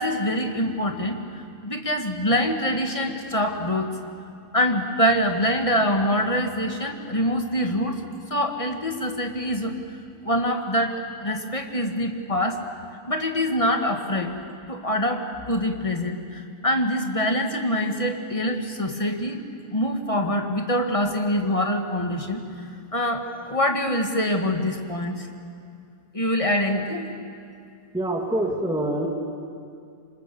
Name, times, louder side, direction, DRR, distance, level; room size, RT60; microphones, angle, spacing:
voice 1, 0.0-3.9 4.5-9.7 10.2-10.9 11.2-12.6 13.1-14.3 14.7-19.4 19.7-22.4 22.9-25.3 26.1-27.1, equal, 20° left, 3 dB, 1.7 m, -25 dB
voice 2, 27.9-29.1, right 1 dB, 5° right, 1 dB, 2.1 m, -25 dB
26.5 x 25.5 x 7.1 m, 2.4 s
omnidirectional pair, 1.8 m